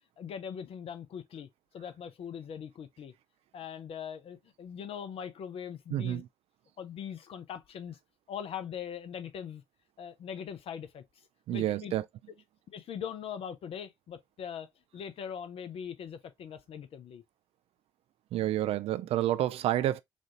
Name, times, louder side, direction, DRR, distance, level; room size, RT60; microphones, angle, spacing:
voice 1, 0.2-1.5 1.7-3.1 3.5-6.2 6.8-8.0 8.3-9.6 10.0-11.0 11.5-12.0 12.7-17.2, left 8 dB, 50° left, 0.6 m, -41 dB
voice 2, 5.9-6.3 11.5-12.0 18.3-20.0, right 13 dB, 55° right, 0.4 m, -29 dB
4.1 x 2.4 x 2.9 m
figure-of-eight pair, 50°, 12 cm